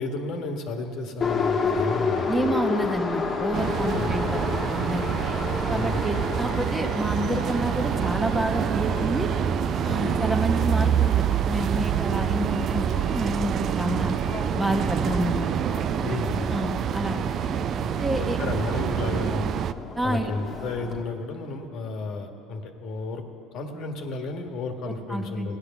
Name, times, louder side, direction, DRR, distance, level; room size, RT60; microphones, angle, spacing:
voice 1, 0.0-2.5 3.9-4.1 5.7-6.0 9.8-10.2 16.0-16.6 18.4-19.6 20.0-23.2 23.5-25.6, left 3 dB, 60° left, 5 dB, 1.4 m, -32 dB
Subway metro underground, 1.2-21.0, left 5 dB, 35° left, 1.3 m, -32 dB
voice 2, 2.3-5.0 5.7-9.3 9.8-14.1 14.6-15.5 16.5-17.2 18.0-18.4 20.0-20.3 24.9-25.5, right 1 dB, 10° right, 4 dB, 1.0 m, -29 dB
sound 1, 3.5-19.7, right 9 dB, 45° right, 0.3 m, -26 dB
16.0 x 9.7 x 7.0 m, 2.8 s
supercardioid pair, 110°, 0 cm